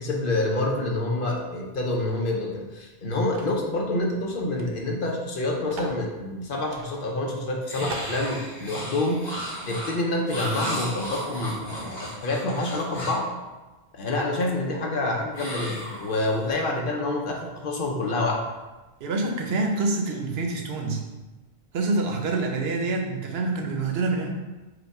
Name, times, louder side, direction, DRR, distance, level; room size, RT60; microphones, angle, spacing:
voice 1, 0.0-9.4 9.7-13.3 13.9-18.4, left 2 dB, 60° left, 0 dB, 0.8 m, -27 dB
sound 1, 3.3-3.6 4.5-4.7 4.9-5.0 5.7-6.0 6.7-6.9 7.4-7.5 7.9-8.2, right 3 dB, 55° right, 0.6 m, -38 dB
sound 2, 7.7-13.3 15.3-16.5, equal, 45° left, 1.5 m, -35 dB
voice 2, 19.0-21.1 21.7-24.3, right 3 dB, 75° right, 2 dB, 0.9 m, -26 dB
5.0 x 2.2 x 4.6 m, 1.1 s
omnidirectional pair, 1.1 m